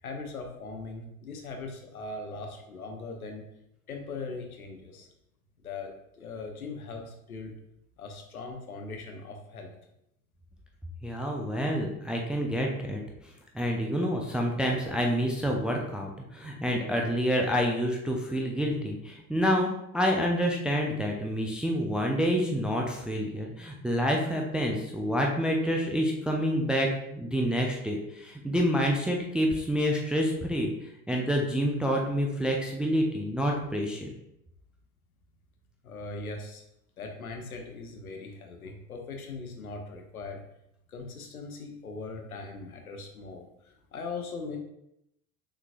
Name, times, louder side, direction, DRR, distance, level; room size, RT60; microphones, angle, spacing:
voice 1, 0.0-3.4 3.9-5.1 5.6-7.6 8.0-9.7 35.8-36.6 37.0-40.4 40.9-44.6, left 3 dB, 80° left, 3 dB, 0.9 m, -40 dB
voice 2, 11.0-13.0 13.5-30.7 31.1-34.1, equal, ahead, 1 dB, 0.3 m, -28 dB
6.3 x 3.2 x 2.4 m, 0.80 s
figure-of-eight pair, 70°, 43 cm